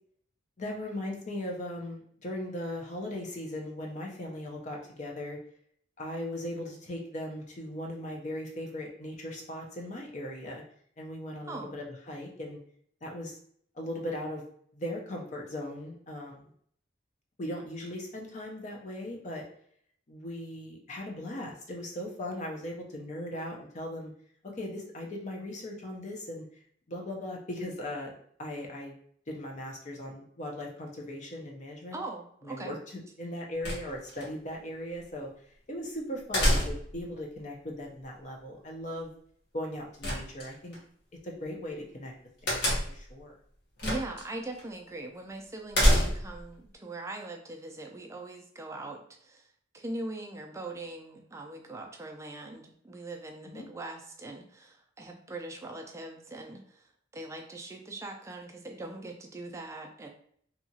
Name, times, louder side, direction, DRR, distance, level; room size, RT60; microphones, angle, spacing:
voice 1, 0.6-5.4 6.0-10.6 11.0-12.6 13.0-13.3 13.7-14.4 14.7-16.5 17.4-19.4 20.1-24.1 24.6-26.5 26.9-28.1 28.4-28.9 29.3-32.0 32.4-35.3 35.7-39.1 39.5-40.8 41.2-42.1 42.4-43.3 53.4-53.7, left 1 dB, 35° left, 0 dB, 0.5 m, -38 dB
voice 2, 31.9-32.7 43.8-49.5 49.7-60.1, right 2 dB, 15° right, 2 dB, 0.3 m, -41 dB
sound 1, 33.6-34.3 36.3-37.0 40.0-40.8 42.5-43.1 43.8-44.2 44.6-44.7 45.7-46.4, equal, 60° left, 0.9 m, -26 dB
2.8 x 2.3 x 2.7 m, 0.63 s
head